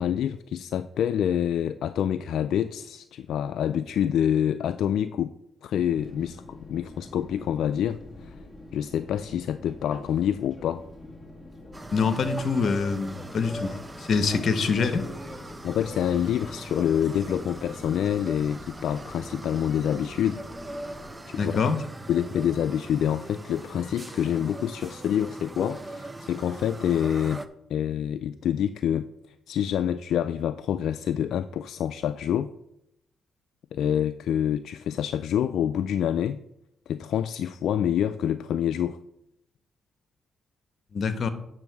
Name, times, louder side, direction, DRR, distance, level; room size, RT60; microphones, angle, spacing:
voice 1, 0.0-5.3 5.6-8.3 8.7-10.9 15.6-20.4 21.3-21.7 22.1-27.4 27.7-29.1 29.5-32.5 33.7-36.4 36.9-39.0, left 9 dB, 80° left, 11 dB, 0.3 m, -27 dB
Fixed-wing aircraft airplane, 5.8-21.1, left 2 dB, 10° left, 2.2 m, -45 dB
sound 1, 11.7-27.5, right 2 dB, 15° right, 0.7 m, -41 dB
voice 2, 11.9-15.1 21.3-21.8 40.9-41.3, left 5 dB, 55° left, 10 dB, 1.0 m, -25 dB
8.9 x 6.2 x 4.6 m, 0.81 s
cardioid pair, 80°, 0 cm